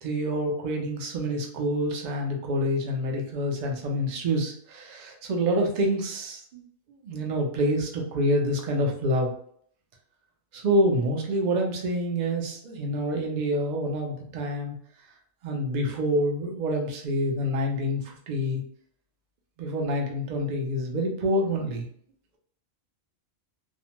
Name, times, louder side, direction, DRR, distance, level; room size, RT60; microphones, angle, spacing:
voice 1, 0.0-6.6 7.0-9.3 10.5-14.8 15.4-18.6 19.6-21.9, equal, 55° right, 1 dB, 0.5 m, -27 dB
2.5 x 2.1 x 2.9 m, 0.62 s
omnidirectional pair, 1.3 m